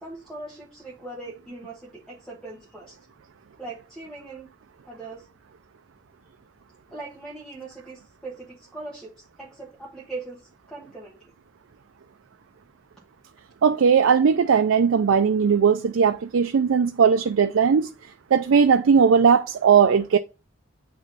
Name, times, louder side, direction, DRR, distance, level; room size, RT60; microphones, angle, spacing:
voice 1, 0.0-3.0 3.6-4.5 4.9-5.3 6.9-11.3, right 2 dB, 5° left, 1.2 m, -40 dB
voice 2, 13.6-17.9 18.3-20.2, right 6 dB, 90° right, 0.4 m, -18 dB
8.3 x 3.1 x 5.5 m
head